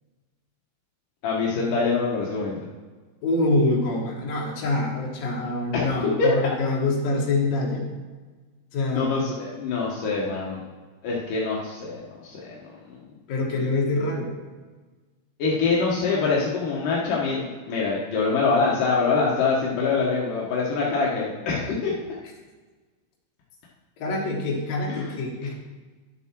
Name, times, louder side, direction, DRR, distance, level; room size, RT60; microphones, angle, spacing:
voice 1, 1.2-2.6 5.7-5.8 6.2-6.4 8.9-10.6 11.0-13.0 13.5-13.7 15.4-21.9 24.9-25.2, left 4 dB, 80° left, -5 dB, 1.9 m, -25 dB
voice 2, 3.2-7.9 8.7-9.2 13.3-14.3 24.0-25.5, left 2 dB, 55° left, -2 dB, 2.0 m, -25 dB
11.5 x 7.4 x 4.5 m, 1.3 s
omnidirectional pair, 5.9 m